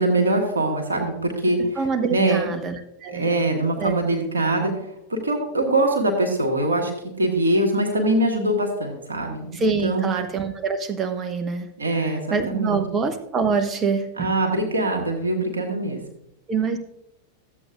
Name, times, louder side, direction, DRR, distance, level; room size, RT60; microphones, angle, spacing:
voice 1, 0.0-2.5 3.1-6.9 7.2-10.1 11.8-12.8 14.2-16.0, right 1 dB, 75° right, 2 dB, 1.5 m, -23 dB
voice 2, 1.8-2.7 3.0-3.2 3.8-4.0 9.5-11.7 12.3-14.3 16.5-16.8, right 5 dB, 25° right, 8 dB, 0.9 m, -25 dB
13.5 x 7.8 x 2.5 m, 0.81 s
figure-of-eight pair, 90°, 0 cm